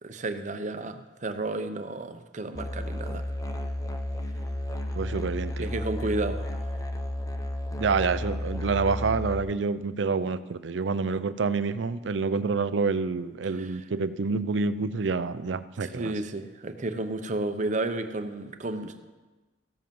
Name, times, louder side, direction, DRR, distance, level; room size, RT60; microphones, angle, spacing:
voice 1, 0.0-3.2 5.6-6.7 13.6-13.8 15.8-19.1, right 2 dB, 40° right, 8 dB, 0.7 m, -32 dB
Musical instrument, 2.5-9.4, left 1 dB, 20° left, 0.6 m, -32 dB
voice 2, 5.0-5.7 7.8-16.1, right 4 dB, 85° right, 14 dB, 0.5 m, -28 dB
14.5 x 7.7 x 5.4 m, 1.2 s
head